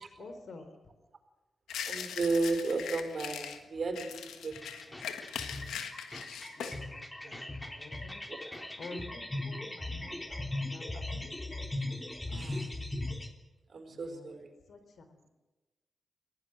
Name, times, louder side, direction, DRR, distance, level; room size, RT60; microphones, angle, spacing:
voice 1, 0.2-0.6 6.6-8.2 8.8-11.7 12.3-12.8 13.9-14.3 14.7-15.3, left 3 dB, 70° left, 8 dB, 3.8 m, -50 dB
sound 1, 1.7-3.6 4.0-6.8, left 8 dB, 85° left, 1.6 m, -40 dB
voice 2, 1.8-5.8 6.6-6.8 7.2-7.4 8.3-8.4 12.3-12.9 13.7-14.5, right 3 dB, 60° right, 6 dB, 4.4 m, -35 dB
sound 2, 4.5-13.3, left 2 dB, 20° left, 3.3 m, -39 dB
23.0 x 16.5 x 7.8 m, 1.1 s
supercardioid pair, 45°, 0 cm